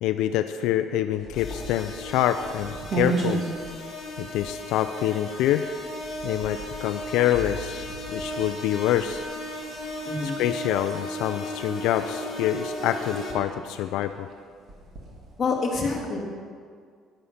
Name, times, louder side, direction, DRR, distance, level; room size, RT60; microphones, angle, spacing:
voice 1, 0.0-3.4 4.2-5.6 6.2-9.2 10.2-14.3, left 12 dB, 80° left, 9 dB, 0.4 m, -26 dB
sound 1, 1.1-15.6, right 4 dB, 30° right, 1.9 m, -38 dB
sound 2, 1.3-13.3, left 1 dB, 40° left, 2.7 m, -36 dB
voice 2, 10.0-10.4 15.4-16.2, left 4 dB, 20° left, -4 dB, 2.1 m, -27 dB
10.5 x 9.9 x 5.7 m, 2.1 s
cardioid pair, 175°, 0 cm